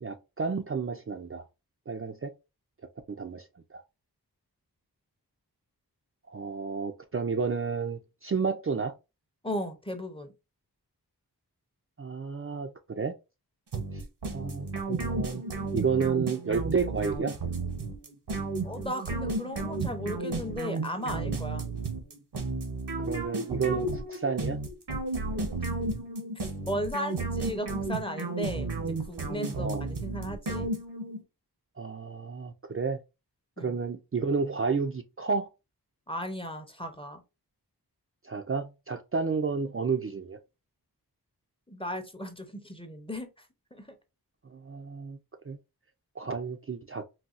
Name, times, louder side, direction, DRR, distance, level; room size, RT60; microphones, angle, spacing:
voice 1, 0.0-1.4 1.9-2.3 3.1-3.5 3.7-3.8 6.3-8.9 12.0-13.1 13.9-14.0 14.3-15.4 15.7-17.4 23.0-24.6 29.6-29.9 31.8-33.0 33.6-35.5 38.2-40.4 44.5-45.2 45.5-45.6 46.2-47.0, right 5 dB, 35° right, 0.4 m, -31 dB
voice 2, 9.4-10.3 18.6-21.7 26.7-30.7 33.6-33.8 36.1-37.2 41.7-43.3 43.7-43.9, equal, 15° left, 0.6 m, -36 dB
sound 1, 13.7-31.2, right 2 dB, 75° right, 0.8 m, -33 dB
4.0 x 2.2 x 2.4 m
wide cardioid pair, 50°, 40 cm